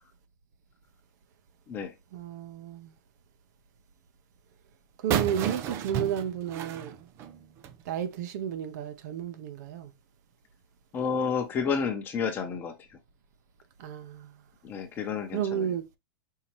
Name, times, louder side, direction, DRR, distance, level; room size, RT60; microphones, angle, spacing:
voice 1, 2.1-2.9 5.0-7.0 7.9-9.9 13.8-14.3 15.3-15.9, right 9 dB, 50° right, 0.7 m, -32 dB
sound 1, 5.1-7.8, right 9 dB, 20° right, 0.4 m, -32 dB
voice 2, 10.9-13.0 14.6-15.7, left 6 dB, 15° left, 0.8 m, -31 dB
5.5 x 2.8 x 3.0 m
supercardioid pair, 165°, 12 cm